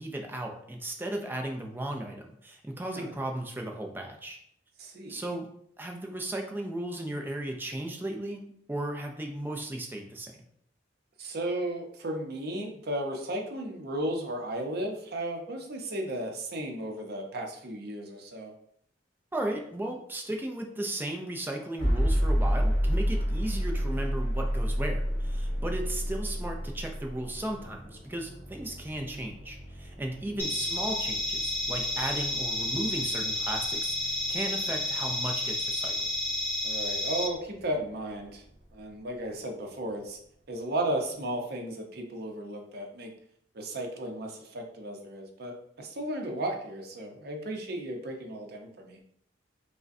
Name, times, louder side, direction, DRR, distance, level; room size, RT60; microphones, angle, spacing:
voice 1, 0.0-4.4 5.1-5.5 5.8-10.4 19.3-35.9, right 1 dB, 10° right, 2 dB, 0.4 m, -35 dB
voice 2, 4.8-5.2 11.2-18.5 30.2-30.5 36.6-38.4 38.7-40.2 40.5-43.1 43.5-49.0, right 1 dB, 55° right, 3 dB, 0.6 m, -34 dB
sound 1, 21.8-37.7, equal, 40° left, 1.0 m, -31 dB
sound 2, 30.4-37.3, left 2 dB, 10° left, 0.8 m, -31 dB
4.8 x 2.1 x 2.6 m, 0.69 s
head